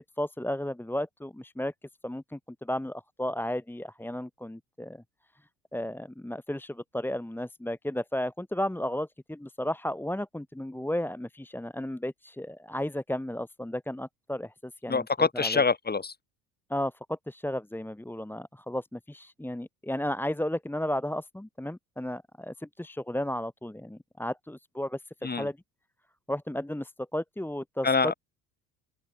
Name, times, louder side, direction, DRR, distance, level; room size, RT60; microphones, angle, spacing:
voice 1, 0.0-1.7 2.0-5.0 5.7-15.6 16.7-25.6 26.3-28.1, left 1 dB, 5° left, 2.4 m, -34 dB
voice 2, 14.9-16.1 25.2-25.5 27.8-28.1, left 4 dB, 20° left, 4.3 m, -25 dB
open air
hypercardioid pair, 65°, 45 cm